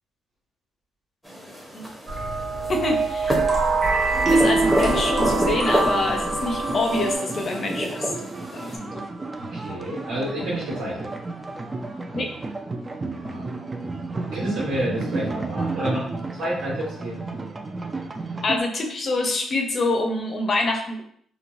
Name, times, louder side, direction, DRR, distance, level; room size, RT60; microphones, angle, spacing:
sound 1, 1.2-8.8, equal, ahead, 0.7 m, -30 dB
sound 2, 2.1-7.2, right 3 dB, 40° right, 0.8 m, -23 dB
voice 1, 2.7-3.3 4.2-8.1 8.5-9.0 12.1-12.3 18.4-21.0, left 2 dB, 45° left, 3 dB, 0.6 m, -26 dB
sound 3, 4.1-18.6, right 3 dB, 25° right, 0.3 m, -33 dB
voice 2, 9.4-11.1 13.1-13.5 14.3-17.2, right 1 dB, 80° right, -8 dB, 1.3 m, -29 dB
3.1 x 2.1 x 2.5 m, 0.63 s
cardioid pair, 90°, 0 cm